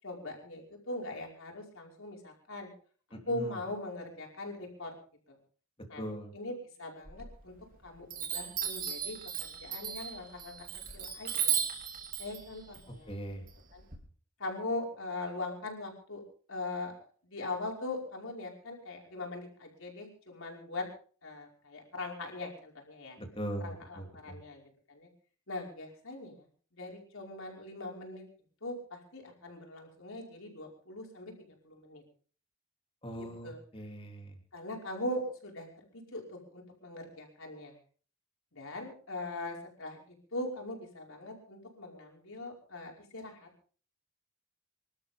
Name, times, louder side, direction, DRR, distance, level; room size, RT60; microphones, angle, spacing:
voice 1, 0.0-2.7 3.3-4.9 5.9-6.0 6.3-7.5 7.8-9.2 9.6-10.7 10.9-11.6 12.2-13.2 13.7-13.8 14.4-16.2 16.5-16.9 17.2-20.9 21.2-23.2 23.6-24.6 24.9-25.1 25.5-26.5 26.7-28.2 28.6-31.3 31.6-32.0 33.4-33.6 34.5-35.7 35.9-37.7 38.5-40.0 40.3-43.5, left 2 dB, 65° left, 0 dB, 5.3 m, -40 dB
voice 2, 3.1-3.6 6.0-6.3 13.1-13.4 23.2-24.4 33.0-34.3, equal, 25° left, 2 dB, 3.2 m, -40 dB
Chime, 7.1-7.7 8.1-14.0, right 9 dB, 40° right, 3.1 m, -36 dB
26.5 x 12.5 x 3.7 m, 0.43 s
head